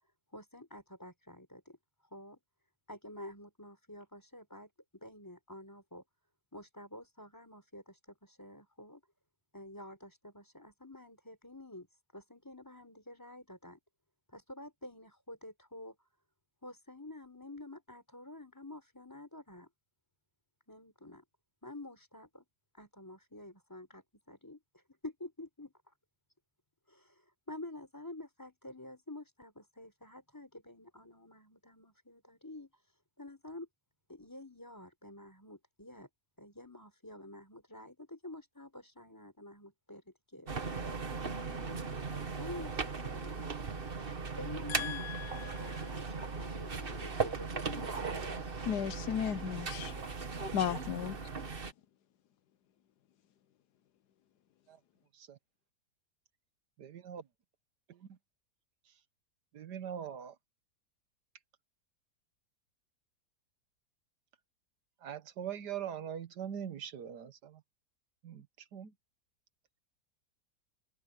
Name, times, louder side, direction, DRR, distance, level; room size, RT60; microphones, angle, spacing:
voice 1, 0.3-1.8 2.1-2.4 2.9-6.0 6.5-9.0 9.5-13.8 14.3-15.9 16.6-19.7 20.7-21.2 21.6-22.4 22.7-25.9 26.9-33.7 34.1-36.1 36.4-40.5 41.5-42.1 42.3-43.7 44.4-48.7, left 1 dB, 10° left, 4.3 m, -49 dB
sound 1, 40.5-51.7, right 4 dB, 35° right, 1.6 m, -38 dB
voice 2, 44.7-45.8 48.7-49.9 50.5-51.2, left 9 dB, 80° left, 1.4 m, -35 dB
voice 3, 56.8-57.2 57.9-58.2 59.5-60.4 65.0-67.6 68.2-68.5 68.7-68.9, right 9 dB, 85° right, 1.7 m, -42 dB
omnidirectional pair, 1.7 m